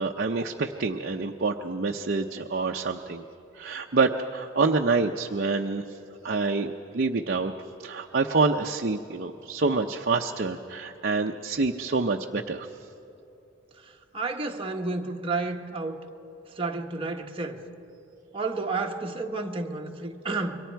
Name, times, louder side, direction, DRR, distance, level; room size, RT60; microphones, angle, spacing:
voice 1, 0.0-3.2 3.6-5.9 6.2-7.5 7.8-12.7, right 3 dB, 50° right, 2 dB, 0.7 m, -27 dB
voice 2, 13.8-16.0 16.6-17.6 18.3-20.6, right 3 dB, 30° right, 1 dB, 1.4 m, -31 dB
28.5 x 23.0 x 4.6 m, 2.9 s
head